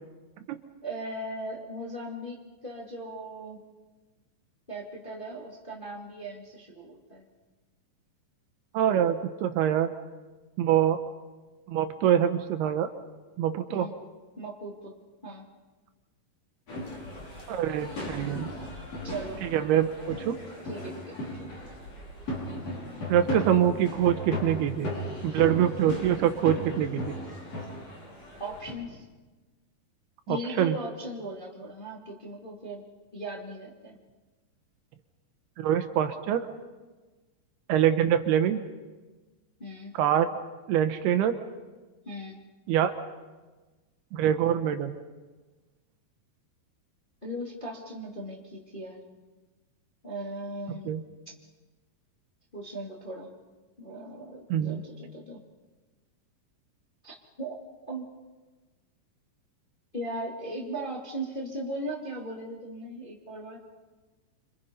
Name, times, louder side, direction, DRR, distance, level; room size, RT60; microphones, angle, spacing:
voice 1, 0.8-2.4 2.6-3.7 4.7-7.3 13.7-13.9 14.4-14.9 15.2-15.4 19.0-19.4 20.6-21.5 28.4-29.1 30.3-32.8 33.1-34.0 39.6-39.9 42.0-42.4 47.2-49.0 50.0-50.9 52.5-53.3 53.8-55.4 57.0-58.0 59.9-63.7, right 1 dB, 15° left, -3 dB, 1.9 m, -38 dB
voice 2, 8.7-9.9 10.6-11.0 11.7-12.9 13.4-13.9 17.5-18.5 19.4-20.4 23.1-24.9 25.2-27.1 30.3-30.8 35.6-36.5 37.7-38.6 40.0-40.3 40.7-41.4 42.7-42.9 44.1-45.0 50.9-51.0 54.5-54.8, right 10 dB, 75° right, 8 dB, 2.8 m, -25 dB
sound 1, 16.7-28.7, left 1 dB, 35° left, 6.3 m, -36 dB
28.0 x 26.5 x 5.5 m, 1.2 s
omnidirectional pair, 4.9 m